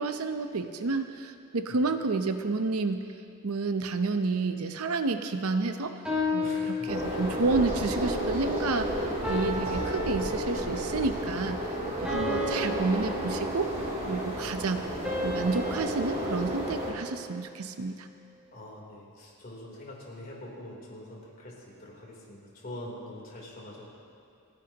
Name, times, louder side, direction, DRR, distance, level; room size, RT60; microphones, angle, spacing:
voice 1, 0.0-3.1 3.4-6.0 6.3-11.6 12.0-13.7 14.1-14.9 15.2-18.1, right 3 dB, 80° right, 8 dB, 0.7 m, -30 dB
sound 1, 6.0-7.6 9.2-10.9 12.0-14.0 15.0-17.4, left 2 dB, 5° right, 3.5 m, -34 dB
voice 2, 6.4-7.2 12.1-12.3 18.5-21.5 21.8-23.8, left 1 dB, 45° left, -3 dB, 3.4 m, -44 dB
sound 2, 6.9-16.9, equal, 35° right, 4.1 m, -32 dB
30.0 x 10.5 x 3.0 m, 2.5 s
head